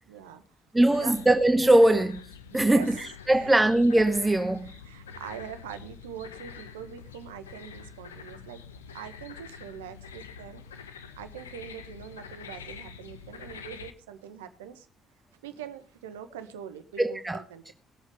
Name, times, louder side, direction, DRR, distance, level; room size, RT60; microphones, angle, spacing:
voice 1, 0.1-0.4 1.0-1.1 2.5-3.0 3.3-3.5 4.6-8.6 8.9-10.6 11.2-14.9 15.4-17.7, right 9 dB, 75° right, 1.2 m, -43 dB
voice 2, 0.7-2.2 2.5-4.7 17.0-17.4 17.7-17.8, right 1 dB, 15° right, 1.1 m, -21 dB
sound 1, 0.9-13.9, left 6 dB, 85° left, 0.9 m, -46 dB
19.0 x 8.2 x 5.4 m
figure-of-eight pair, 45°, 0 cm